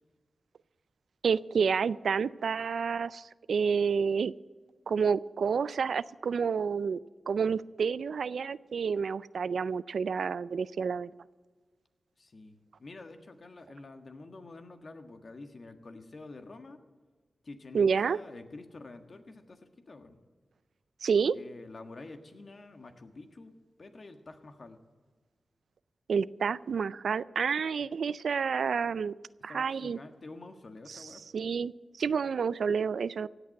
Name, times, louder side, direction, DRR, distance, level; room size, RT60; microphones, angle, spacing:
voice 1, 1.2-4.3 4.9-7.0 7.3-11.1 17.7-18.2 21.0-21.3 26.1-29.2 29.4-30.0 31.3-31.7 32.0-33.3, right 6 dB, 85° right, 18 dB, 0.4 m, -29 dB
voice 2, 12.2-16.8 17.4-20.2 21.3-24.8 29.5-31.2, left 3 dB, 55° left, 7 dB, 1.6 m, -48 dB
16.5 x 8.2 x 7.7 m, 1.4 s
cardioid pair, 65°, 0 cm